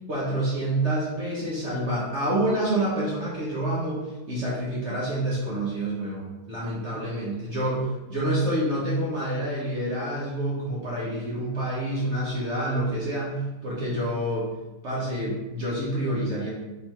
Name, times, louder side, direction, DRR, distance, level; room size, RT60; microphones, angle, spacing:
voice 1, 0.1-14.5 14.8-16.5, right 1 dB, 50° right, -6 dB, 1.0 m, -28 dB
3.8 x 3.0 x 4.3 m, 1.1 s
omnidirectional pair, 1.8 m